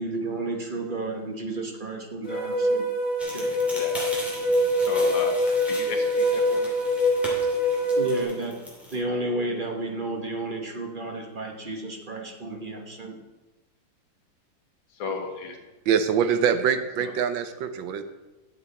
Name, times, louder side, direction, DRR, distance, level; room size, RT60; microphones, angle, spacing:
voice 1, 0.0-2.8 3.3-3.5 7.9-8.6 8.9-13.2, right 2 dB, 35° right, 2 dB, 1.0 m, -32 dB
sound 1, 2.2-8.2, left 1 dB, 50° left, 2.4 m, -24 dB
sound 2, 3.2-8.9, equal, ahead, 2.6 m, -39 dB
voice 2, 4.8-5.4 5.7-6.7 15.0-15.6 17.0-17.1, left 4 dB, 80° left, 3 dB, 2.0 m, -34 dB
voice 3, 15.9-18.0, right 7 dB, 80° right, 9 dB, 1.5 m, -24 dB
11.0 x 7.6 x 4.2 m, 1.1 s
omnidirectional pair, 2.1 m